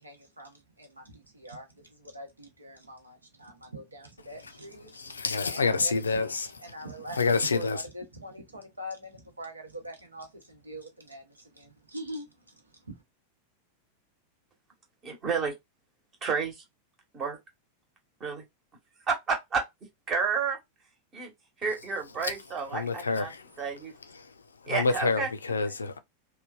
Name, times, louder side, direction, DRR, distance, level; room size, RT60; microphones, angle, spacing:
voice 1, 0.0-5.2 5.5-6.3 6.6-7.2 7.5-12.5 12.8-13.0, equal, 80° right, 0.9 m, -43 dB
voice 2, 4.9-6.5 7.1-7.8 22.2-22.3 22.7-23.4 24.2-24.3 24.6-26.0, left 4 dB, 75° left, 0.4 m, -27 dB
voice 3, 15.0-15.5 16.2-16.6 17.1-17.4 18.2-18.4 19.1-19.6 20.1-20.6 21.1-21.3 21.6-23.9 24.7-25.3, right 5 dB, 30° right, 1.1 m, -30 dB
3.1 x 2.2 x 2.2 m
figure-of-eight pair, 90°, 0 cm